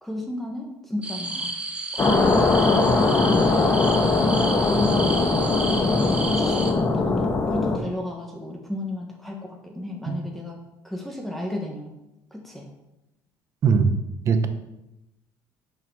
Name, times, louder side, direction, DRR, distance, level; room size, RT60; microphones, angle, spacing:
voice 1, 0.0-1.5 1.9-3.5 3.9-5.3 6.0-10.6 10.8-11.9 12.3-12.7, left 1 dB, ahead, 0 dB, 1.4 m, -33 dB
sound 1, 1.0-6.7, right 2 dB, 15° right, 1.3 m, -32 dB
sound 2, 2.0-7.8, left 3 dB, 30° left, 1.3 m, -21 dB
voice 2, 13.6-14.5, right 5 dB, 45° right, 8 dB, 1.1 m, -21 dB
11.0 x 5.9 x 4.9 m, 0.91 s
cardioid pair, 130°, 7 cm